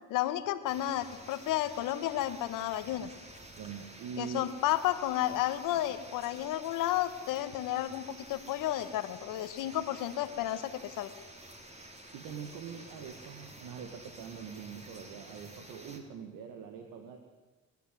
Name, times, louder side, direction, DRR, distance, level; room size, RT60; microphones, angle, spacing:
voice 1, 0.1-3.1 4.2-11.1, left 13 dB, 90° left, 11 dB, 1.5 m, -32 dB
sound 1, 0.7-16.0, right 1 dB, 20° right, 4.2 m, -51 dB
voice 2, 3.6-4.4 12.1-17.2, right 7 dB, 85° right, 5 dB, 2.1 m, -43 dB
28.5 x 12.0 x 9.4 m, 1.2 s
supercardioid pair, 75°, 32 cm